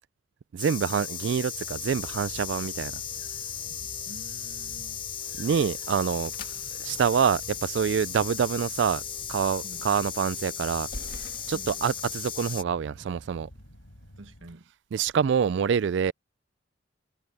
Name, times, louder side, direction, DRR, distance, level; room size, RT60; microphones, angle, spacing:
voice 1, 0.5-2.9 5.4-6.3 6.8-9.0 9.3-10.9 11.2-13.5 14.9-16.1, right 7 dB, 65° right, 0.3 m, -26 dB
sound 1, 0.6-12.6, left 8 dB, 25° left, 1.3 m, -36 dB
sound 2, 1.5-14.5, equal, 80° left, 4.3 m, -50 dB
voice 2, 4.0-5.0 9.6-9.9 11.5-11.8 14.2-14.7, right 2 dB, 80° right, 1.6 m, -48 dB
sound 3, 5.8-12.7, left 2 dB, 50° left, 2.0 m, -49 dB
head